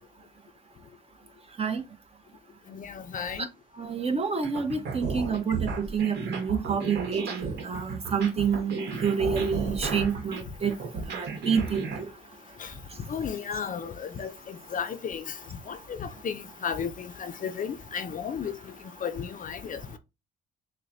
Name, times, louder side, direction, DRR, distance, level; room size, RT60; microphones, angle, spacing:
voice 1, 3.8-10.7 11.1-12.1, right 6 dB, 35° right, 1.0 m, -28 dB
sound 1, 4.4-12.0, right 4 dB, 65° right, 1.2 m, -34 dB
voice 2, 13.1-13.9 14.2-14.3 14.7-15.2 16.2-16.4 16.6-16.9 17.4-18.5 19.0-19.1 19.4-19.5, left 7 dB, 45° left, 0.5 m, -31 dB
6.3 x 2.2 x 2.6 m
supercardioid pair, 70°, 18 cm